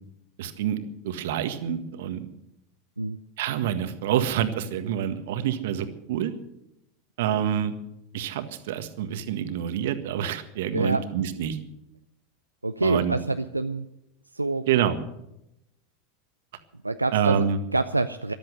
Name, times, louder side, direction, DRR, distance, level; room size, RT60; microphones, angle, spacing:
voice 1, 0.4-2.3 3.4-6.3 7.2-7.7 8.1-11.6 12.8-13.2 14.7-15.0 17.1-17.6, right 9 dB, 60° right, 10 dB, 1.6 m, -27 dB
voice 2, 12.6-13.8 14.3-14.6 16.8-17.4 17.7-18.3, right 2 dB, 90° right, 9 dB, 0.5 m, -26 dB
14.0 x 12.5 x 7.9 m, 0.82 s
figure-of-eight pair, 85°, 0 cm